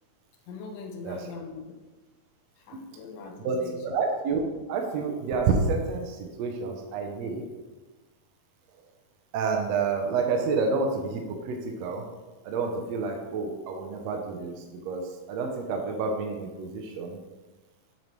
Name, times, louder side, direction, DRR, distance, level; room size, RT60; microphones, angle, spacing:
voice 1, 0.5-1.8 2.7-3.8, left 4 dB, 80° left, 3 dB, 2.3 m, -41 dB
voice 2, 3.4-4.4 4.7-7.4 9.3-12.0 12.4-15.0 15.3-17.2, right 4 dB, 80° right, 2 dB, 1.5 m, -29 dB
8.3 x 5.4 x 3.1 m, 1.2 s
omnidirectional pair, 4.0 m